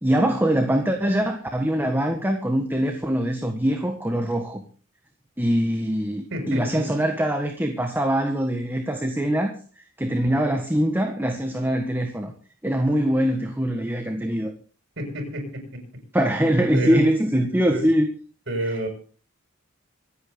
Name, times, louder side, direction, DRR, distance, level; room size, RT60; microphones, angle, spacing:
voice 1, 0.0-4.6 5.4-12.3 12.6-14.5 16.1-18.1 18.6-18.9, equal, 10° right, 1.6 m, -23 dB
voice 2, 6.3-6.8 15.0-15.8 16.7-17.0 17.7-17.8 18.5-18.9, right 1 dB, 55° right, 6.9 m, -29 dB
25.5 x 9.2 x 3.9 m
head